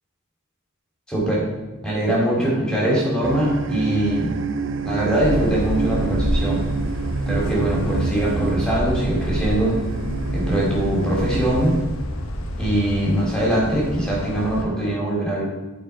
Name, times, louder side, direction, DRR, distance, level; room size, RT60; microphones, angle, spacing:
voice 1, 1.1-1.4 1.8-4.3 4.8-6.6 7.3-9.7 10.3-11.7 12.6-15.4, right 1 dB, 5° left, -4 dB, 2.7 m, -22 dB
sound 1, 3.2-11.8, right 4 dB, 60° right, 0.5 m, -28 dB
sound 2, 5.2-14.6, equal, 80° left, 1.0 m, -28 dB
13.0 x 4.5 x 4.5 m, 1.2 s
head